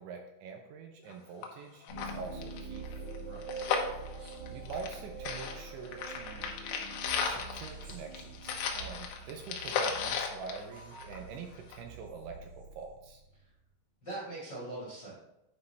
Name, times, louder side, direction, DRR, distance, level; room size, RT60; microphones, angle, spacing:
voice 1, 0.0-2.9 4.5-6.5 7.2-13.2, right 5 dB, 80° right, 3 dB, 2.8 m, -45 dB
sound 1, 1.1-1.2 1.4-1.5 1.8-5.0 5.2-11.3 11.7-11.8, left 6 dB, 75° left, 2.8 m, -35 dB
sound 2, 1.9-13.4, right 3 dB, 35° right, 2.2 m, -46 dB
voice 2, 3.2-3.7 14.0-15.2, right 2 dB, 40° left, -7 dB, 1.6 m, -42 dB
9.5 x 4.7 x 3.4 m, 0.87 s
omnidirectional pair, 5.6 m